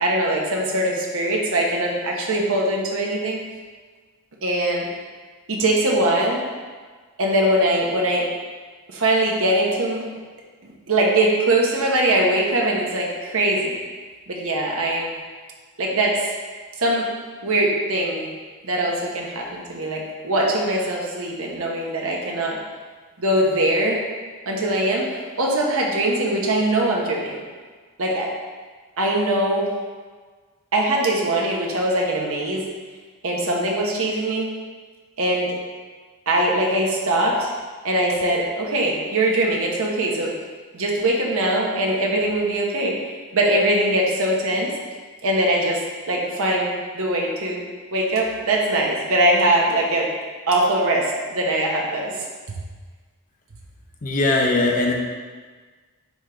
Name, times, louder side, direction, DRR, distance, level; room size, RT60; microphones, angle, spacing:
voice 1, 0.0-3.4 4.4-4.8 5.5-6.4 7.2-8.3 8.9-10.1 10.6-13.8 14.3-15.1 15.8-16.3 16.8-17.1 17.4-18.3 18.6-22.6 23.2-24.0 24.5-27.4 28.0-28.3 29.0-29.7 30.7-32.7 33.2-34.5 35.2-35.6 36.3-37.5 37.8-40.3 40.7-44.7 45.2-47.6 47.9-50.1 50.5-52.3, right 1 dB, 65° right, -2 dB, 1.0 m, -22 dB
voice 2, 54.0-54.9, left 2 dB, 40° left, 0 dB, 0.9 m, -20 dB
10.5 x 3.4 x 3.9 m, 1.5 s
head